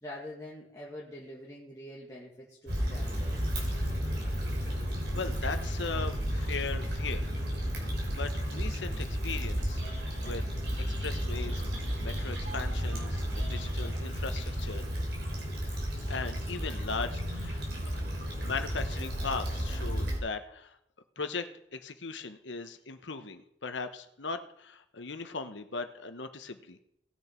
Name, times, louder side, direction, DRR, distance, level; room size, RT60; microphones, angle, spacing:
voice 1, 0.0-3.4, left 1 dB, 15° left, -6 dB, 1.8 m, -45 dB
Stream / Traffic noise roadway noise / Trickle dribble, 2.7-20.2, equal, 60° right, 3.3 m, -33 dB
voice 2, 5.1-7.2 8.1-10.4 11.0-11.6 12.0-14.8 16.1-18.0 18.4-20.8 21.2-26.8, left 4 dB, 80° left, 8 dB, 1.0 m, -38 dB
Telephone, 9.6-10.3 10.6-14.3, right 2 dB, 80° right, 2.9 m, -49 dB
18.0 x 6.8 x 4.5 m, 0.76 s
head